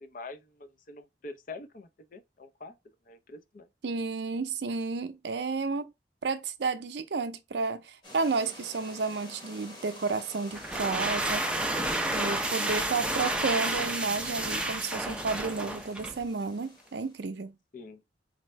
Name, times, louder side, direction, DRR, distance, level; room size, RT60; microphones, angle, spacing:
voice 1, 0.0-2.8 3.1-3.7 17.7-18.0, left 3 dB, 50° left, 0.5 m, -45 dB
voice 2, 3.8-5.9 6.2-11.5 12.1-17.5, right 4 dB, 70° right, 0.5 m, -31 dB
sound 1, 8.0-17.3, left 1 dB, 25° left, 1.3 m, -48 dB
sound 2, 10.5-16.2, right 1 dB, 5° right, 0.4 m, -31 dB
4.2 x 2.6 x 3.1 m
head